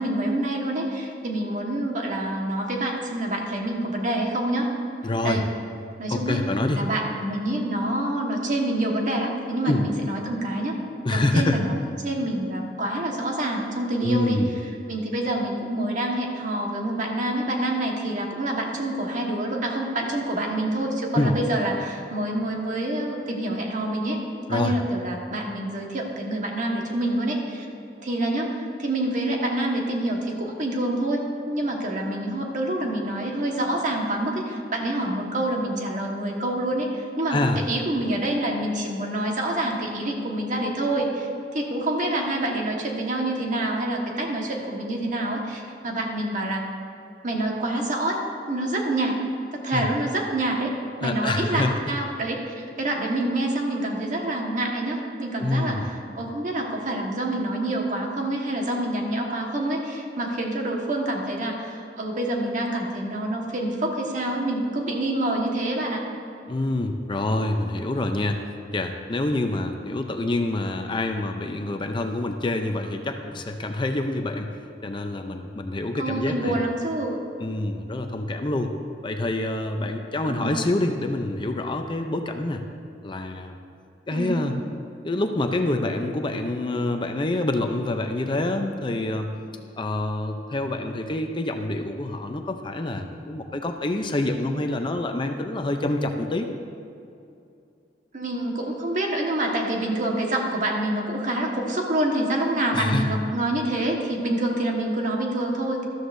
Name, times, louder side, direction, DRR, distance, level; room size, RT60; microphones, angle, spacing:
voice 1, 0.0-4.7 5.2-5.5 6.0-6.4 6.7-10.8 11.1-11.7 12.0-14.4 14.9-24.2 24.5-27.7 28.0-46.6 47.2-48.2 48.5-49.2 49.5-50.7 51.0-66.0 76.0-77.1 80.2-80.6 84.1-84.4 98.1-105.8, right 1 dB, 45° right, 0 dB, 1.5 m, -27 dB
voice 2, 5.0-5.4 6.1-6.8 9.6-9.8 11.0-11.6 14.0-14.5 21.1-21.4 24.5-24.7 37.3-37.6 49.7-49.9 51.0-51.7 55.4-55.9 66.5-68.4 68.7-74.6 74.8-76.6 77.4-78.7 79.0-82.6 83.0-83.6 84.1-84.5 85.0-89.3 89.8-96.5 102.7-103.2, left 2 dB, 30° left, 5 dB, 0.5 m, -26 dB
13.0 x 13.0 x 2.6 m, 2.6 s
head